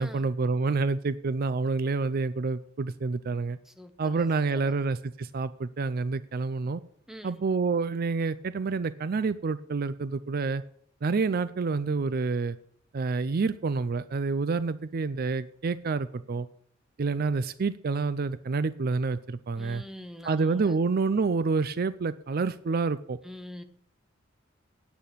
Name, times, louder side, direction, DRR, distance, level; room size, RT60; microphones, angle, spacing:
voice 1, 0.0-3.6 4.0-6.8 7.2-10.6 11.0-12.6 12.9-16.5 17.0-19.8 20.2-23.2, right 4 dB, 50° right, 15 dB, 0.5 m, -28 dB
voice 2, 3.7-4.8 7.1-7.4 19.5-20.7 23.2-23.6, equal, ahead, 8 dB, 1.0 m, -44 dB
9.2 x 9.1 x 6.8 m, 0.64 s
head